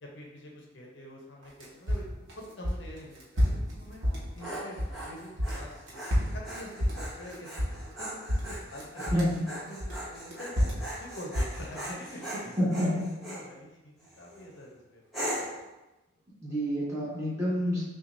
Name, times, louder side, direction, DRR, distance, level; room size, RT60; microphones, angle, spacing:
voice 1, 0.0-4.1 4.3-10.7 11.0-12.5 12.8-13.0 13.2-15.3, equal, 65° left, -1 dB, 0.7 m, -46 dB
sound 1, 1.4-5.0 5.3-8.0 8.3-9.4 9.8-11.9, equal, 85° right, 1.0 m, -29 dB
Dog, 4.0-13.5 14.0-14.4 15.1-15.6, right 1 dB, ahead, 1.3 m, -40 dB
voice 2, 9.0-9.4 12.6-13.1 16.4-17.8, equal, 15° right, -10 dB, 1.4 m, -28 dB
5.8 x 2.4 x 2.6 m, 1.0 s
head